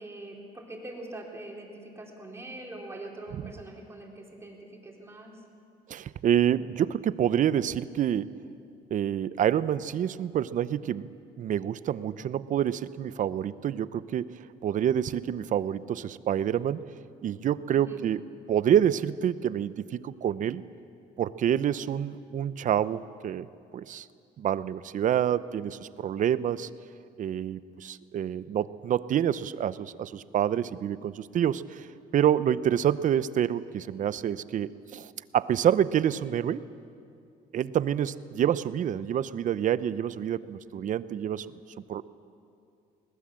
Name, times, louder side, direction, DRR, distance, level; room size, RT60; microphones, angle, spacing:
voice 1, 0.0-5.4 17.7-18.0, right 1 dB, 15° right, -1 dB, 4.1 m, -43 dB
voice 2, 5.9-8.3 8.9-11.1 11.4-16.8 17.2-18.2 18.5-20.6 21.2-23.5 23.7-24.1 24.4-26.7 27.2-31.9 32.1-36.6 37.5-41.5 41.9-42.0, right 10 dB, 50° right, 16 dB, 0.7 m, -27 dB
21.5 x 19.5 x 7.6 m, 2.5 s
cardioid pair, 110°, 17 cm